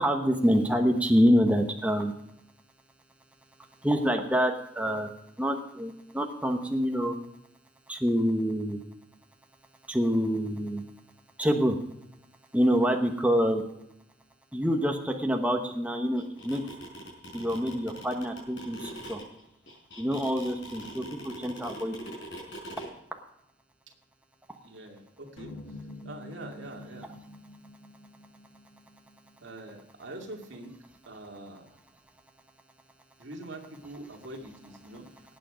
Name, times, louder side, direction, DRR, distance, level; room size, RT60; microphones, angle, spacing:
voice 1, 0.0-2.1 3.8-5.1 5.4-7.1 7.9-8.8 9.9-10.8 11.4-11.8 12.5-13.6 14.5-16.6 17.3-19.2 20.0-22.0, equal, 5° right, 3 dB, 1.1 m, -26 dB
sound 1, 16.2-22.9, equal, 60° left, 5.1 m, -42 dB
voice 2, 24.6-25.6 26.0-27.1 29.4-30.7 31.0-31.6 33.2-35.2, right 1 dB, 65° right, 1 dB, 2.5 m, -44 dB
sound 2, 25.4-29.7, left 2 dB, 85° left, 1.7 m, -47 dB
18.5 x 8.6 x 5.1 m, 0.81 s
head